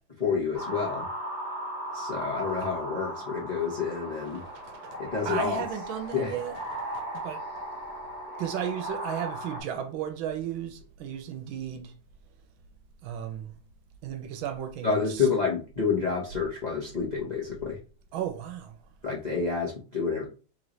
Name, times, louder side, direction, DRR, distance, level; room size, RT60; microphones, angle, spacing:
voice 1, 0.2-1.1 1.9-4.4 5.0-5.6 6.1-6.3 14.8-17.8 19.0-20.3, left 5 dB, 45° left, 0.5 m, -29 dB
sound 1, 0.5-9.6, right 1 dB, 35° right, 1.6 m, -37 dB
voice 2, 4.3-5.0 5.2-7.4 8.4-11.9 13.0-13.5 14.0-15.3 18.1-18.8, right 9 dB, 75° right, 1.3 m, -35 dB
3.6 x 3.1 x 3.9 m
omnidirectional pair, 2.3 m